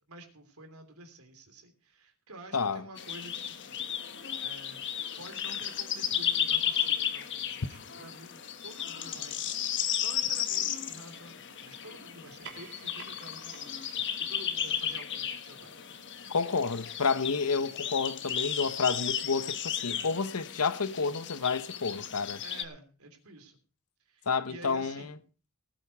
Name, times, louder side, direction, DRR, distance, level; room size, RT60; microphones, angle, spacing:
voice 1, 0.1-3.8 4.4-4.8 5.2-9.7 10.0-15.8 22.4-23.6 24.0-25.2, right 2 dB, 85° right, 3.1 m, -50 dB
voice 2, 2.5-2.8 16.3-22.4 24.3-25.1, left 5 dB, 90° left, 0.9 m, -30 dB
sound 1, 3.0-22.6, left 9 dB, 55° left, 1.2 m, -34 dB
sound 2, 12.2-17.1, right 6 dB, 60° right, 2.7 m, -53 dB
18.5 x 8.8 x 4.7 m
head